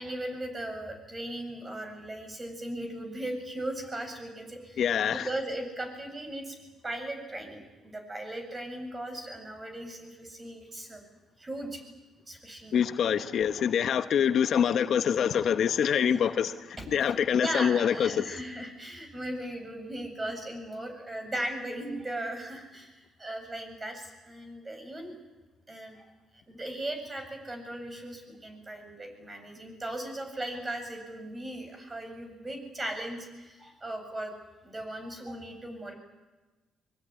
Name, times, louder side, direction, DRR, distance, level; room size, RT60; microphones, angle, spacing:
voice 1, 0.0-4.8 5.1-6.6 6.8-11.1 11.4-11.8 12.3-12.7 16.0-16.5 16.8-16.9 17.4-25.2 25.7-26.1 26.5-34.3 34.6-35.9, right 1 dB, 25° right, 7.8 m, -38 dB
voice 2, 4.8-5.3 12.7-16.5 16.9-18.2, left 8 dB, 65° left, 1.0 m, -25 dB
23.5 x 22.0 x 9.9 m
cardioid pair, 90°, 0 cm